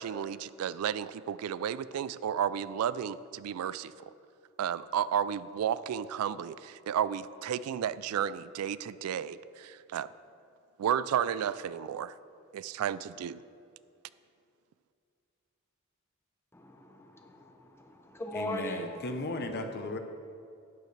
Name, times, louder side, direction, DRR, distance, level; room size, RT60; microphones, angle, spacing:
voice 1, 0.0-3.9 4.6-10.1 10.8-12.1 12.5-13.4, right 9 dB, 85° right, 16 dB, 0.3 m, -32 dB
voice 2, 16.5-19.0, left 1 dB, 10° left, 3 dB, 0.8 m, -39 dB
voice 3, 18.3-20.0, left 2 dB, 50° left, 6 dB, 0.8 m, -36 dB
12.0 x 9.1 x 3.3 m, 2.5 s
head